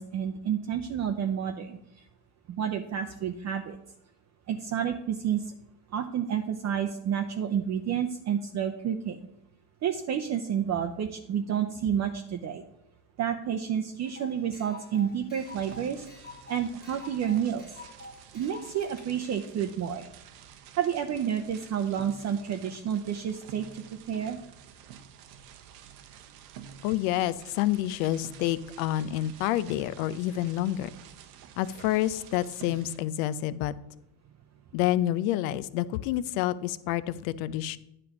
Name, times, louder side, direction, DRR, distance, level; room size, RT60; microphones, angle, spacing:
voice 1, 0.0-2.0 2.5-3.8 4.5-5.5 5.9-9.3 9.8-12.6 13.2-17.7 18.3-20.1 20.8-24.4, right 8 dB, 35° right, 5 dB, 0.6 m, -30 dB
sound 1, 14.1-19.1, left 2 dB, 20° left, 1.3 m, -48 dB
sound 2, 15.4-33.0, right 8 dB, 80° right, 1.0 m, -50 dB
voice 2, 26.8-30.9 31.6-33.7 34.7-37.8, left 13 dB, 75° left, 17 dB, 0.6 m, -28 dB
9.9 x 3.4 x 7.0 m, 0.82 s
supercardioid pair, 100°, 46 cm